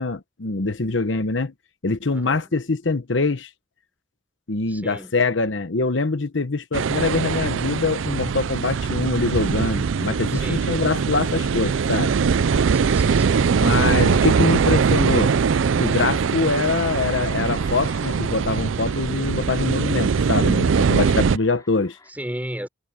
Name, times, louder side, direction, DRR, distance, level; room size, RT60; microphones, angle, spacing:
voice 1, 0.0-1.5 1.8-3.5 4.5-12.1 13.6-15.3 15.8-22.0, left 3 dB, 70° left, 1.0 m, -24 dB
voice 2, 2.1-2.5 4.7-5.2 10.4-10.8 12.7-13.6 22.1-22.7, equal, 10° right, 4.7 m, -34 dB
sound 1, 6.7-21.4, right 5 dB, 85° right, 0.5 m, -21 dB
sound 2, 16.7-22.1, left 3 dB, 20° left, 4.2 m, -48 dB
head